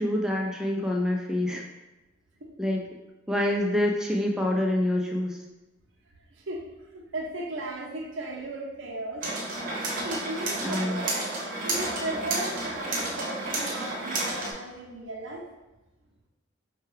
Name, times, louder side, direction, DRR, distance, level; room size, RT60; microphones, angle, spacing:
voice 1, 0.0-1.7 2.6-2.8 3.3-5.4 10.6-11.0, left 1 dB, 5° right, 0 dB, 0.4 m, -26 dB
voice 2, 6.9-9.3 10.0-11.1 11.6-15.4, right 2 dB, 75° right, -2 dB, 0.7 m, -36 dB
sound 1, 9.2-14.5, right 2 dB, 45° right, 0.8 m, -31 dB
4.6 x 2.3 x 3.2 m, 1.0 s
head